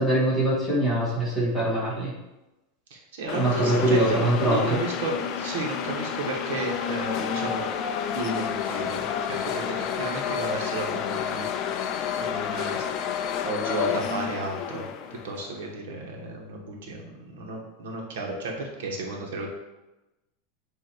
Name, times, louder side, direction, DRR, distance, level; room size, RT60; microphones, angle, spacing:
voice 1, 0.0-2.1 3.3-4.7, right 1 dB, 5° left, -8 dB, 1.7 m, -23 dB
voice 2, 2.9-7.7 8.1-11.8 12.1-12.9 13.4-14.9 15.2-19.5, right 2 dB, 70° right, 0 dB, 1.3 m, -33 dB
sound 1, 3.3-15.6, left 8 dB, 30° left, 0.4 m, -30 dB
7.9 x 2.8 x 4.6 m, 1.0 s
supercardioid pair, 180°, 0 cm